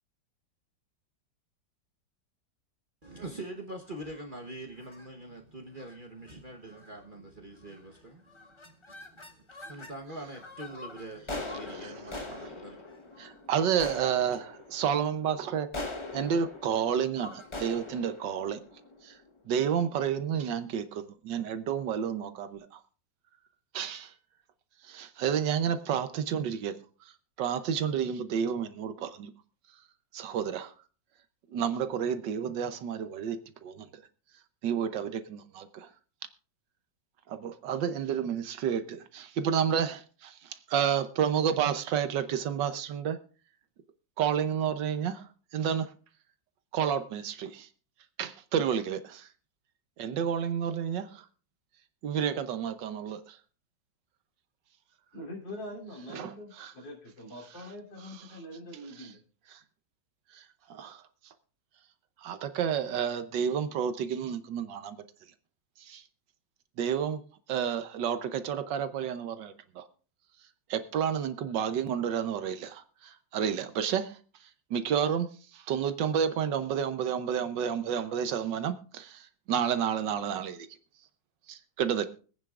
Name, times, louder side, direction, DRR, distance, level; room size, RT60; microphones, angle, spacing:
voice 1, 3.0-12.8, right 1 dB, 35° right, 1.0 m, -44 dB
sound 1, 3.9-4.3 4.8-5.1 5.8-6.0 6.3-6.4 6.7-7.1 7.6-8.0 8.3-10.0 10.3-19.5, left 2 dB, 25° left, 0.7 m, -43 dB
voice 2, 13.2-15.7 16.1-18.6 19.0-19.1 19.5-22.7 23.7-24.1 24.9-26.7 27.4-29.3 30.1-30.7 31.5-33.4 33.6-33.9 34.6-35.9 37.3-43.2 44.2-45.2 45.5-45.9 46.7-47.7 48.2-49.3 50.0-51.2 52.0-53.4 56.1-56.7 59.0-59.1 59.5-59.6 60.7-61.0 62.2-65.0 65.9-66.0 66.8-67.2 67.5-69.8 70.7-74.1 74.7-75.3 75.5-80.7 81.5-82.1, right 8 dB, 75° right, 1.5 m, -30 dB
voice 3, 55.1-59.2, left 1 dB, 75° left, 3.9 m, -43 dB
24.5 x 9.1 x 2.4 m
omnidirectional pair, 2.0 m